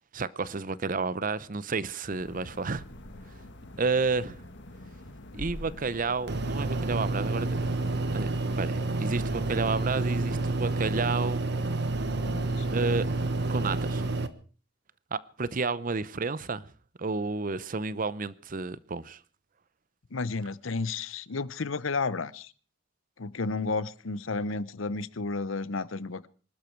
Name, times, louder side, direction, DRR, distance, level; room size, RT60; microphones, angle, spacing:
voice 1, 0.1-2.8 3.8-4.4 5.3-7.5 8.1-8.3 8.6-11.4 12.7-13.1 13.5-14.1 15.1-16.7 17.0-19.2, right 4 dB, 40° right, 0.7 m, -31 dB
sound 1, 2.1-10.3, left 1 dB, 60° left, 1.6 m, -46 dB
sound 2, 6.3-14.3, right 2 dB, 60° right, 1.2 m, -29 dB
voice 2, 12.2-12.7 20.1-22.5 23.2-26.3, left 3 dB, 75° left, 0.8 m, -32 dB
25.0 x 12.0 x 4.6 m
head